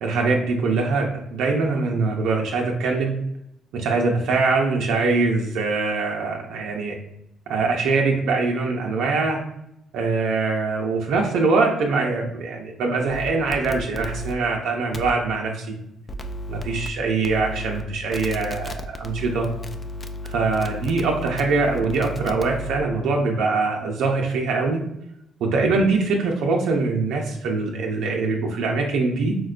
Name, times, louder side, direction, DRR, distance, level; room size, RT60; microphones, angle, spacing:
voice 1, 0.0-3.1 3.7-7.0 7.5-9.4 9.9-15.7 16.5-19.5 20.2-24.8 25.4-29.4, right 3 dB, 85° right, 0 dB, 0.5 m, -23 dB
sound 1, 13.1-14.3 14.9-15.1 16.1-16.9 17.2-17.8 18.1-22.8, equal, 30° left, 0.3 m, -33 dB
4.4 x 2.1 x 2.4 m, 0.79 s
cardioid pair, 90°, 0 cm